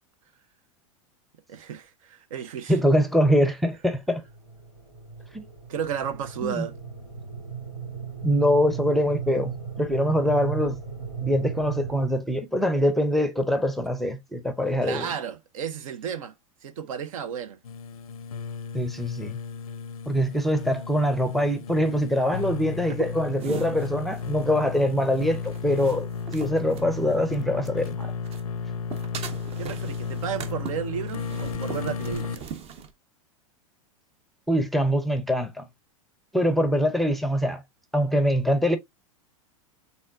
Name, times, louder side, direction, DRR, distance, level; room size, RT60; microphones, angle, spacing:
voice 1, 1.5-2.8 5.7-6.7 14.8-16.3 16.6-17.6 29.6-32.5, right 8 dB, 70° right, 0.7 m, -33 dB
voice 2, 2.7-4.2 5.3-5.4 6.4-6.6 8.2-10.8 11.2-15.1 18.7-19.4 20.1-28.1 34.5-35.7 36.3-37.6 37.9-38.8, equal, ahead, 0.6 m, -24 dB
sound 1, 4.0-12.1, right 7 dB, 85° right, 2.7 m, -36 dB
sound 2, 17.6-32.4, left 5 dB, 90° left, 0.5 m, -34 dB
sound 3, 23.4-27.9 28.2-32.9, right 7 dB, 35° right, 0.7 m, -40 dB
4.3 x 3.4 x 2.4 m
hypercardioid pair, 105°, 18 cm